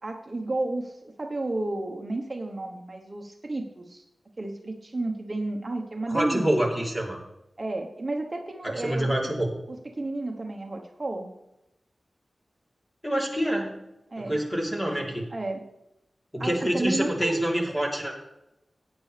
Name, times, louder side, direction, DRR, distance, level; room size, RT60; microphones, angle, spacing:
voice 1, 0.0-4.0 4.4-6.7 7.6-9.1 9.9-11.3 14.1-14.4 15.3-15.6 16.4-17.4, right 2 dB, 35° right, 2 dB, 1.1 m, -32 dB
voice 2, 6.1-7.2 8.7-9.5 13.0-13.7 14.2-15.2 16.3-18.1, right 1 dB, 10° left, -2 dB, 3.3 m, -26 dB
16.0 x 9.7 x 3.4 m, 0.90 s
wide cardioid pair, 85°, 0 cm